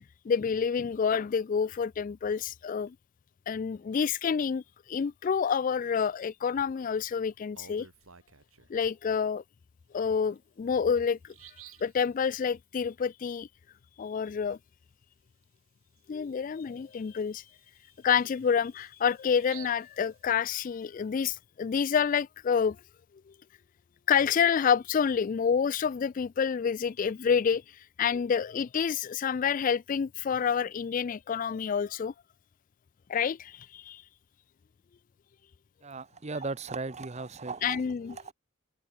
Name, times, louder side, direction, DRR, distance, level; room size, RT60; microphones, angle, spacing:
voice 1, 0.3-2.9 3.5-4.6 4.9-7.9 8.7-9.4 9.9-11.3 11.8-13.5 14.0-14.6 16.1-17.4 18.0-22.8 24.1-32.1 33.1-34.0 37.6-38.2, left 6 dB, 40° left, 0.3 m, -28 dB
Bird vocalization bird call bird song, 7.3-8.8 10.3-10.4 10.8-10.9 11.2-12.0 15.4-15.6 16.0-16.1 16.6-20.8, right 9 dB, 80° right, 4.8 m, -53 dB
voice 2, 35.8-37.8 38.2-38.3, right 3 dB, 30° right, 0.8 m, -36 dB
head